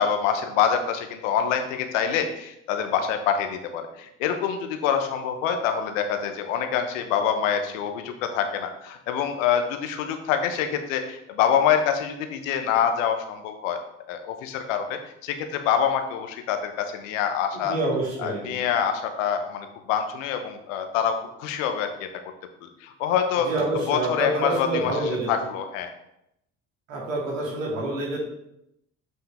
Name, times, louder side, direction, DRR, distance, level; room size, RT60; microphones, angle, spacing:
voice 1, 0.0-13.8 14.1-17.8 18.2-22.1 22.6-23.5 23.9-25.9, left 8 dB, 75° left, 7 dB, 1.0 m, -26 dB
voice 2, 17.5-18.6 23.4-25.3 26.9-28.2, right 2 dB, 85° right, -3 dB, 2.5 m, -27 dB
7.7 x 5.7 x 3.5 m, 0.80 s
hypercardioid pair, 55°, 38 cm